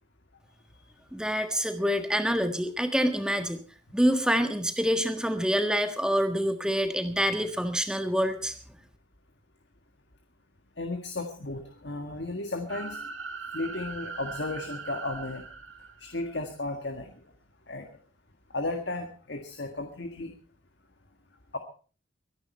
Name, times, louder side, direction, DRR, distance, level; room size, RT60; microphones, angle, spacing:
voice 1, 1.1-3.6 3.9-8.5, equal, 5° right, 7 dB, 1.5 m, -26 dB
voice 2, 10.8-13.1 13.5-15.4 16.0-17.1 17.7-17.9 18.5-20.3 21.5-21.6, left 2 dB, 60° left, 5 dB, 1.7 m, -34 dB
sound 1, 12.7-16.4, right 4 dB, 85° right, 2.1 m, -40 dB
23.5 x 10.5 x 4.4 m, 0.39 s
head